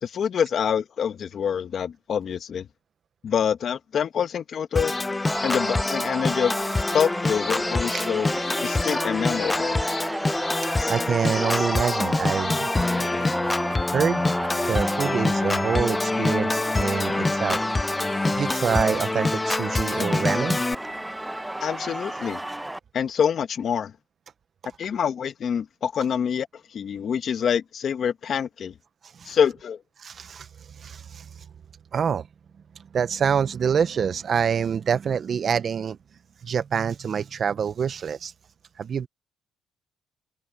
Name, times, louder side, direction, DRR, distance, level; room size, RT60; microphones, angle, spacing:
voice 1, 0.0-2.7 3.2-4.9 5.4-6.5 6.9-8.3 8.6-9.8 21.6-22.4 22.9-23.9 24.8-28.7 29.3-29.8, left 7 dB, 60° left, 1.5 m, -26 dB
Organ, 4.8-20.8, left 2 dB, 20° left, 0.3 m, -26 dB
Singing, 5.3-22.8, right 1 dB, 10° right, 0.9 m, -32 dB
voice 2, 10.6-12.6 13.9-14.2 14.7-17.6 18.3-20.6 29.2-29.4 30.0-30.5 30.8-31.4 31.9-32.3 32.9-36.0 36.4-38.3 38.8-39.1, right 7 dB, 50° right, 0.7 m, -26 dB
sound 1, 12.6-15.5 18.0-20.7, right 10 dB, 70° right, 4.5 m, -47 dB
open air
cardioid pair, 90°, 0 cm